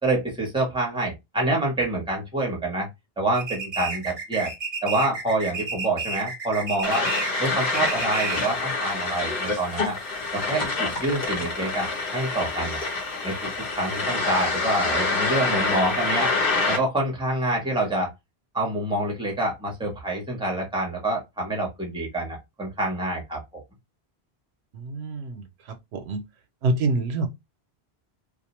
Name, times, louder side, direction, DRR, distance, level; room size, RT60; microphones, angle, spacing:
voice 1, 0.0-2.9 3.2-4.5 4.8-7.1 7.4-9.9 10.3-12.8 13.2-13.5 13.7-16.3 16.7-18.1 18.5-23.4, right 1 dB, 5° right, 0.8 m, -27 dB
sound 1, 3.4-8.6, right 4 dB, 45° right, 0.6 m, -32 dB
sound 2, 6.8-16.8, left 3 dB, 60° left, 1.0 m, -26 dB
voice 2, 24.8-25.4 25.9-26.2 26.6-27.3, right 2 dB, 85° right, 0.8 m, -25 dB
2.4 x 2.2 x 2.9 m
omnidirectional pair, 1.1 m